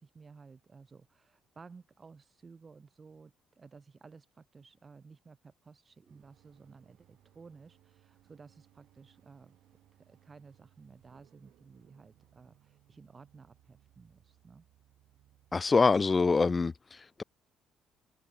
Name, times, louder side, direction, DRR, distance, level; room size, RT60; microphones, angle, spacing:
voice 1, 0.0-9.6 9.9-14.6, right 4 dB, 35° right, 6.8 m, -55 dB
sound 1, 6.1-15.9, right 13 dB, 60° right, 4.2 m, -66 dB
voice 2, 15.5-17.2, left 4 dB, 30° left, 0.5 m, -25 dB
figure-of-eight pair, 45°, 0 cm